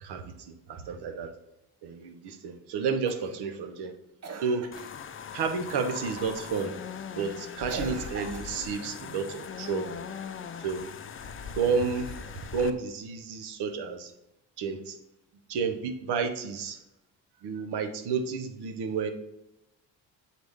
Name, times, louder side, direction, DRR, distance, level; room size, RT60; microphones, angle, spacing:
voice 1, 0.0-1.3 1.8-3.9 4.4-4.7 5.3-6.8 7.2-10.0 10.6-10.9 11.5-12.1 12.5-14.1 14.6-15.0 15.5-16.8 17.4-19.1, right 5 dB, 75° right, 8 dB, 0.8 m, -31 dB
Cough, 3.1-3.4 4.2-5.0 6.2-6.5 7.7-8.7 11.8-12.6 14.1-14.2, right 4 dB, 40° right, 0.8 m, -41 dB
sound 1, 4.7-12.7, left 7 dB, 35° left, 0.4 m, -40 dB
7.7 x 4.1 x 3.5 m, 0.87 s
cardioid pair, 95°, 40 cm